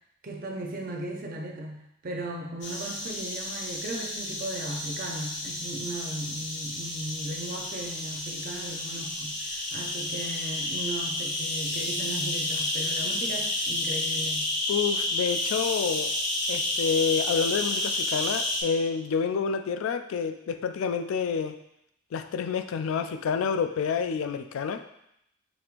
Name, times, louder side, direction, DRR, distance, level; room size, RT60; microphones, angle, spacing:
voice 1, 0.2-1.8 2.0-14.5, right 1 dB, 45° right, 1 dB, 0.6 m, -37 dB
sound 1, 2.6-18.6, left 1 dB, 55° left, 0.7 m, -31 dB
voice 2, 14.7-16.1 16.5-21.6 22.1-24.8, left 6 dB, 80° left, 10 dB, 0.3 m, -28 dB
5.1 x 3.0 x 2.5 m, 0.78 s
head